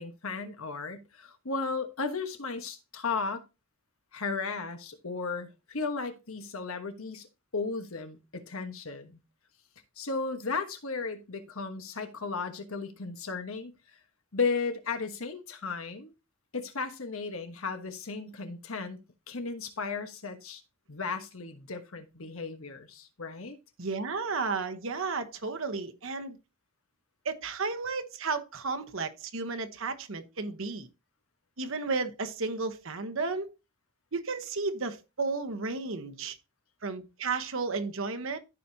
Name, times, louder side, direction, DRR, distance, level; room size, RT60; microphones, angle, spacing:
voice 1, 0.0-3.4 4.1-7.3 7.5-9.2 10.0-13.7 14.3-16.1 16.5-19.0 19.3-20.6 20.9-23.6, left 4 dB, 70° left, 1.2 m, -35 dB
voice 2, 23.8-26.4 27.2-30.9 31.6-33.5 34.1-36.4 36.8-38.4, right 4 dB, 65° right, 1.0 m, -33 dB
14.0 x 5.1 x 2.8 m
head